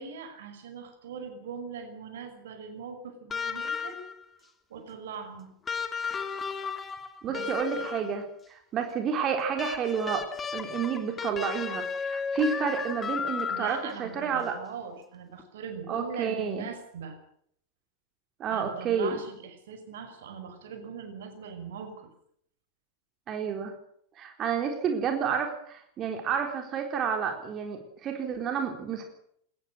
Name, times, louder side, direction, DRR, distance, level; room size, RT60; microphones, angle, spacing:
voice 1, 0.0-4.0 4.7-5.6 7.3-7.9 13.5-17.2 18.5-22.1, right 6 dB, 60° right, 8 dB, 5.6 m, -41 dB
sound 1, 3.3-4.2 5.7-8.2 9.6-14.0 15.4-15.5, left 6 dB, 20° left, 3.2 m, -34 dB
voice 2, 7.2-10.3 10.5-14.6 15.9-16.7 18.4-19.2 23.3-23.7 24.2-29.0, right 6 dB, 30° right, 4 dB, 3.9 m, -30 dB
22.5 x 19.5 x 6.4 m, 0.67 s
figure-of-eight pair, 90°, 0 cm